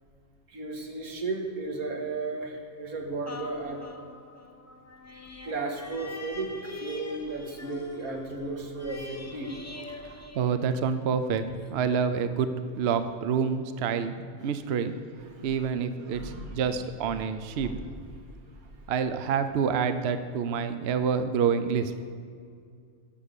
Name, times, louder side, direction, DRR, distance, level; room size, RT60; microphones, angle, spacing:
voice 1, 0.5-3.8 5.4-10.3 15.3-15.5 16.1-16.6 17.6-17.8 18.5-18.6, right 3 dB, 80° right, 2 dB, 1.9 m, -35 dB
sound 1, 3.2-11.1 11.6-11.7, left 2 dB, 20° left, 0.5 m, -44 dB
voice 2, 10.3-14.9 15.4-17.8 18.9-21.9, right 6 dB, 60° right, 10 dB, 0.8 m, -27 dB
11.5 x 7.3 x 6.7 m, 2.2 s
omnidirectional pair, 1.5 m